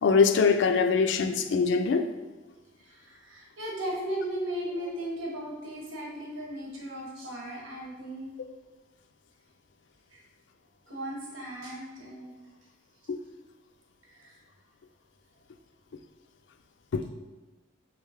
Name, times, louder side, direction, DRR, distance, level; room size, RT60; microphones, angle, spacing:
voice 1, 0.0-2.1 13.1-13.2 16.9-17.0, left 5 dB, 60° left, 7 dB, 0.3 m, -23 dB
voice 2, 2.8-8.3 10.1-10.2 10.9-12.3 14.1-14.4, right 1 dB, 85° right, -2 dB, 1.2 m, -36 dB
3.8 x 3.2 x 3.6 m, 1.2 s
head